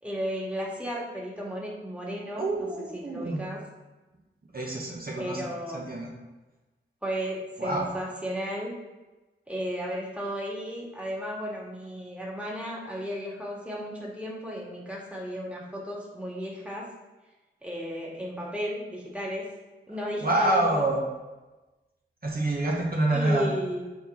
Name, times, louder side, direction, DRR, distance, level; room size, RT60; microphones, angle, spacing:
voice 1, 0.0-2.7 2.9-3.6 5.2-5.9 7.0-8.7 9.5-16.9 17.6-19.5 19.9-20.9 23.1-23.8, equal, 5° right, -4 dB, 2.1 m, -34 dB
voice 2, 2.4-3.4 4.5-5.4 5.7-6.1 7.6-7.9 20.2-21.0 22.2-23.5, right 2 dB, 45° right, -4 dB, 1.9 m, -27 dB
6.5 x 4.4 x 4.8 m, 1.1 s
cardioid pair, 45°, 21 cm